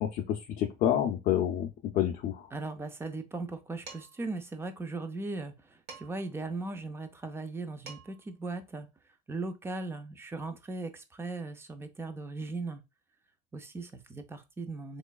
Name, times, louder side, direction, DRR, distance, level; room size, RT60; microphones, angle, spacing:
voice 1, 0.0-2.5, left 11 dB, 55° left, 0.5 m, -29 dB
voice 2, 2.5-8.9 9.3-12.8 13.5-15.0, right 3 dB, 15° right, 0.4 m, -38 dB
Dishes pots and pans, 3.9-4.3 5.9-6.4 7.5-7.6 7.9-8.3, right 4 dB, 70° right, 1.3 m, -48 dB
3.5 x 3.0 x 2.3 m
cardioid pair, 140°, 18 cm